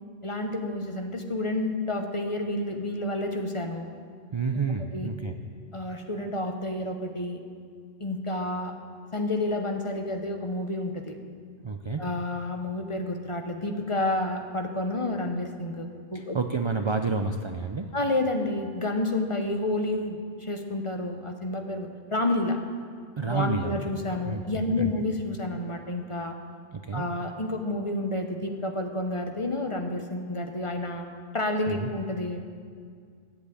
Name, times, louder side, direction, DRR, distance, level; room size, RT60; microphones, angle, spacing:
voice 1, 0.2-3.9 4.9-5.1 5.7-7.4 8.0-8.7 9.1-11.2 12.0-16.4 17.9-22.6 23.2-26.4 26.9-31.1 31.3-32.4, left 2 dB, 30° left, 4 dB, 0.9 m, -30 dB
voice 2, 4.3-5.3 11.6-12.0 16.1-17.9 23.2-23.7 24.2-24.9 26.7-27.0 31.7-31.9, right 4 dB, 40° right, 6 dB, 0.4 m, -29 dB
11.5 x 8.0 x 8.4 m, 2.1 s
omnidirectional pair, 1.1 m